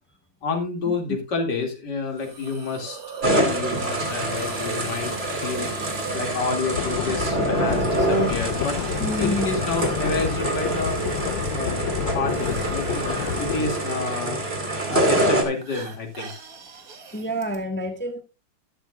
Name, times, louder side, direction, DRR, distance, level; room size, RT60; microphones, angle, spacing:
voice 1, 0.4-5.7 6.1-8.8 9.2-13.0 13.4-14.4 14.7-16.3, left 3 dB, 65° left, 3 dB, 3.1 m, -29 dB
Hiss, 2.2-17.6, right 5 dB, 50° right, 2.1 m, -41 dB
sound 1, 3.2-15.4, right 1 dB, 30° right, 2.4 m, -26 dB
sound 2, 6.7-13.7, left 10 dB, 80° left, 1.4 m, -29 dB
voice 2, 9.0-9.5 17.1-18.2, equal, 5° left, 5 dB, 1.3 m, -28 dB
13.0 x 12.0 x 2.4 m, 0.27 s
omnidirectional pair, 2.0 m